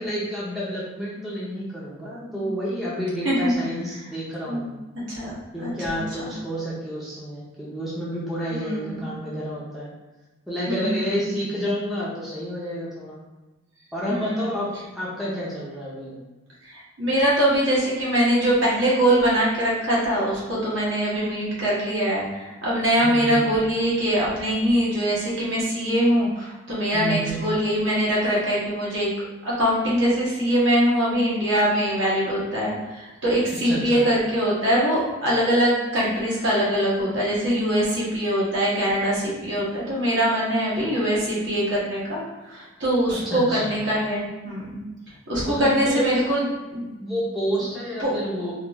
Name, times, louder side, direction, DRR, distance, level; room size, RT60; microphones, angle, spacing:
voice 1, 0.0-4.7 5.5-9.9 10.5-13.2 13.9-16.2 22.9-23.5 26.9-27.4 33.6-34.0 43.2-43.7 45.5-46.2 47.0-48.5, equal, ahead, -8 dB, 0.6 m, -29 dB
voice 2, 5.9-6.3 8.5-9.2 10.7-11.3 14.1-14.6 16.6-29.1 29.4-44.8 45.3-46.4 46.7-46.8 48.0-48.1, equal, 65° right, -7 dB, 1.2 m, -23 dB
3.4 x 2.4 x 2.9 m, 1.1 s
head